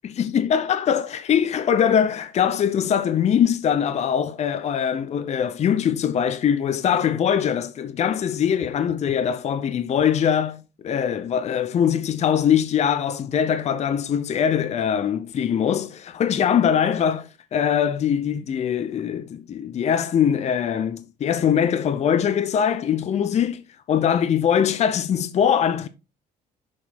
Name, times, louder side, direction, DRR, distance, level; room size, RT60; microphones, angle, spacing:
voice 1, 0.0-23.6 23.9-25.9, left 8 dB, 40° left, 0.6 m, -22 dB
6.3 x 5.6 x 4.2 m
cardioid pair, 110°, 17 cm